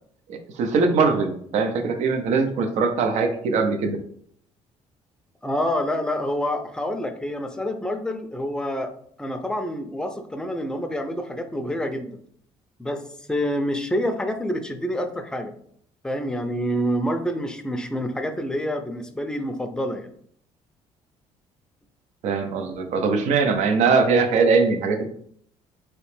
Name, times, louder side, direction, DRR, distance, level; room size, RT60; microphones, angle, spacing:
voice 1, 0.3-4.0 22.2-25.0, right 4 dB, 70° right, 7 dB, 0.6 m, -21 dB
voice 2, 5.4-8.9 9.2-12.2 12.8-13.0 13.3-15.5 16.0-20.1, equal, 5° left, 6 dB, 0.5 m, -27 dB
3.0 x 2.9 x 3.2 m, 0.64 s
cardioid pair, 90°, 12 cm